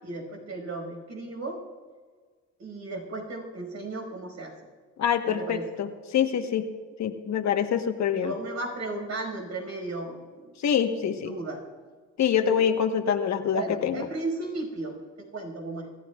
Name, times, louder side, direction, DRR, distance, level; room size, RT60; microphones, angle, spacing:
voice 1, 0.0-1.6 2.6-4.5 5.2-5.7 8.1-10.5 11.0-11.6 12.4-12.6 13.5-14.9 15.2-15.9, right 2 dB, 65° right, 1 dB, 5.5 m, -35 dB
voice 2, 5.0-6.7 7.0-8.3 10.6-11.3 12.2-14.0, left 8 dB, 65° left, 6 dB, 1.3 m, -25 dB
26.5 x 15.0 x 2.4 m, 1.5 s
cardioid pair, 90°, 30 cm